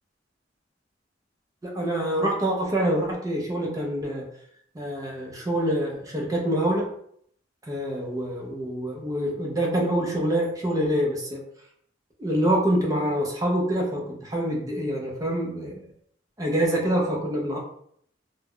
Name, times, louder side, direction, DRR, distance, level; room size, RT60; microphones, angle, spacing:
voice 1, 1.6-4.3 4.7-6.9 7.7-11.5 12.2-15.9 16.4-17.6, right 1 dB, 20° right, -1 dB, 0.5 m, -26 dB
2.2 x 2.0 x 3.5 m, 0.67 s
head